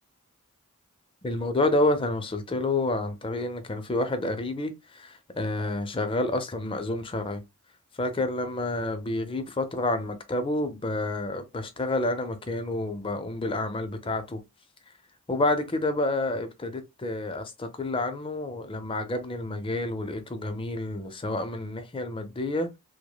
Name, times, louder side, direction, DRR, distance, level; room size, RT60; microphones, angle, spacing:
voice 1, 1.2-7.4 8.0-14.4 15.3-22.8, left 2 dB, 25° left, 0.5 m, -29 dB
4.8 x 2.1 x 2.2 m
head